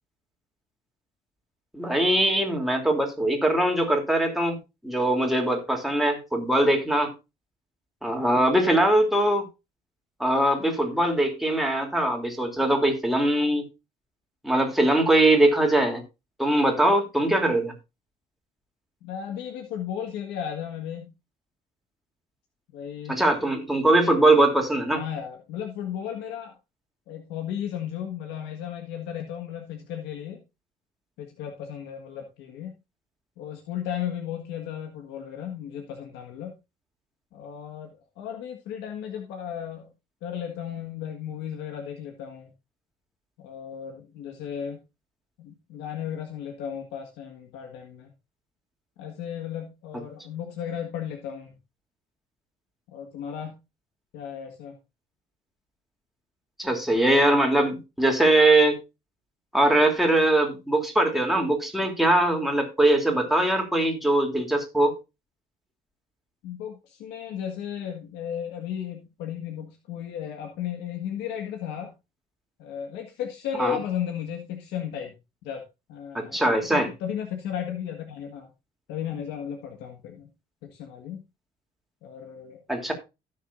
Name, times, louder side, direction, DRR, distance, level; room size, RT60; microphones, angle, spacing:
voice 1, 1.7-4.6 4.8-7.1 8.0-9.4 10.2-13.7 14.4-16.0 16.4-17.7 23.1-25.0 56.6-58.8 59.5-65.0 73.6-73.8 76.1-76.9 82.7-82.9, right 1 dB, ahead, 3.0 m, -21 dB
voice 2, 8.3-8.7 19.0-21.1 22.7-23.2 24.9-26.5 27.1-30.4 31.2-32.7 33.4-36.5 37.3-39.9 40.2-42.5 43.4-44.8 45.4-48.1 49.0-51.5 52.9-53.6 54.1-54.8 66.4-71.9 72.6-75.2 75.4-75.6 75.9-76.4 76.7-78.5 78.9-80.3 80.6-81.2 82.0-82.6, left 9 dB, 90° left, 1.7 m, -35 dB
16.0 x 6.7 x 2.6 m
cardioid pair, 110°, 17 cm